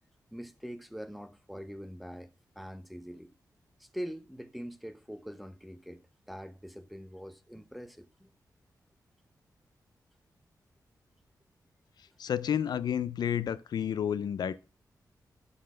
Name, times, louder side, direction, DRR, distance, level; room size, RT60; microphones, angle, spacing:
voice 1, 0.3-2.3 2.6-3.3 3.8-8.3, equal, ahead, 0.7 m, -43 dB
voice 2, 12.2-14.6, left 9 dB, 85° left, 0.5 m, -30 dB
11.5 x 4.1 x 5.6 m
wide cardioid pair, 125°, 7 cm